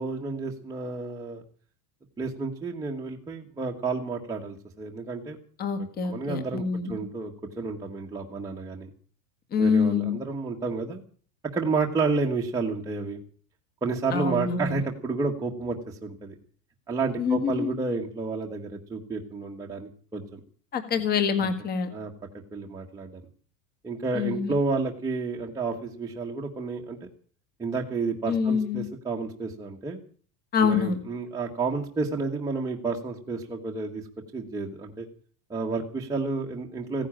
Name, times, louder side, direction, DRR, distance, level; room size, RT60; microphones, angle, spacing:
voice 1, 0.0-1.4 2.2-5.4 6.0-8.9 9.6-11.0 11.5-13.2 13.8-16.3 16.9-20.4 21.9-22.1 22.5-23.2 23.8-27.0 27.6-30.0 30.6-34.0 34.3-35.1 35.5-37.1, right 4 dB, 5° right, -1 dB, 1.4 m, -30 dB
voice 2, 5.6-7.0 9.5-10.2 14.1-14.8 17.2-17.7 20.7-21.9 24.1-24.5 28.3-28.9 30.5-31.0, left 6 dB, 20° left, 9 dB, 1.8 m, -26 dB
16.5 x 10.0 x 8.7 m, 0.43 s
supercardioid pair, 170°, 49 cm